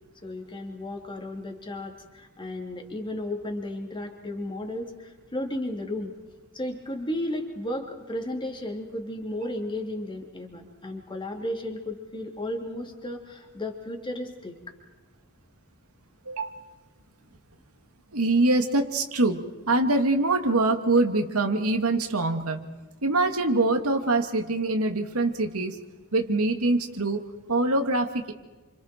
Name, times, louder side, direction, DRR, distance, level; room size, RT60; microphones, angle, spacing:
voice 1, 0.2-6.1 6.5-14.6, left 1 dB, 20° left, 2 dB, 3.0 m, -34 dB
voice 2, 18.1-22.6 23.0-25.8 26.1-27.2 27.5-28.3, right 2 dB, 75° right, 5 dB, 2.3 m, -24 dB
29.5 x 26.5 x 4.6 m, 1.2 s
head